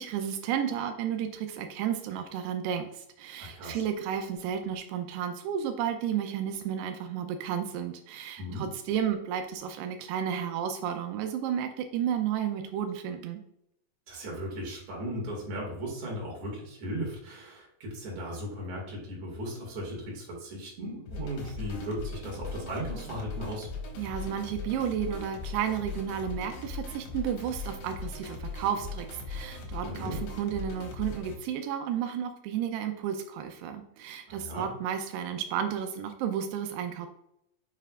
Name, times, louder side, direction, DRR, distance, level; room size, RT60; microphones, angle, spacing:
voice 1, 0.0-13.4 24.0-37.1, right 9 dB, 90° right, 6 dB, 2.7 m, -32 dB
voice 2, 3.4-3.8 8.4-8.7 14.1-23.7 29.8-30.2 34.3-34.7, equal, 50° right, -2 dB, 2.9 m, -37 dB
sound 1, 21.1-31.4, left 3 dB, 90° left, 3.5 m, -39 dB
7.4 x 5.5 x 2.4 m, 0.78 s
omnidirectional pair, 4.7 m